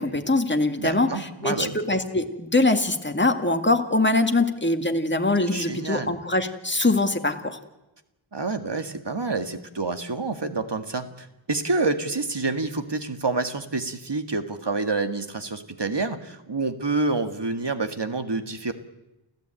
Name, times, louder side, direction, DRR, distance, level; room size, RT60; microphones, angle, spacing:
voice 1, 0.0-7.6, left 2 dB, 20° left, 6 dB, 2.0 m, -23 dB
voice 2, 0.8-1.8 5.5-6.1 8.3-18.7, right 3 dB, 55° right, 8 dB, 1.9 m, -28 dB
29.0 x 14.5 x 9.0 m, 0.97 s
wide cardioid pair, 50°, 50 cm